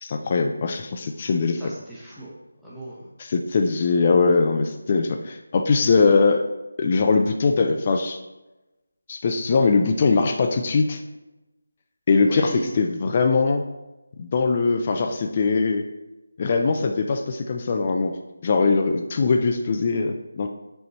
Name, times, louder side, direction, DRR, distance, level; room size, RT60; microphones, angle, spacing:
voice 1, 0.0-1.6 3.3-6.4 6.8-8.2 9.1-11.0 12.1-13.6 14.2-15.9 16.4-18.2 18.4-20.5, left 4 dB, 30° left, 4 dB, 0.4 m, -21 dB
voice 2, 1.2-2.3 2.6-3.1 12.3-12.7, right 1 dB, ahead, -10 dB, 1.0 m, -36 dB
5.3 x 4.4 x 4.1 m, 1.0 s
figure-of-eight pair, 165°, 0 cm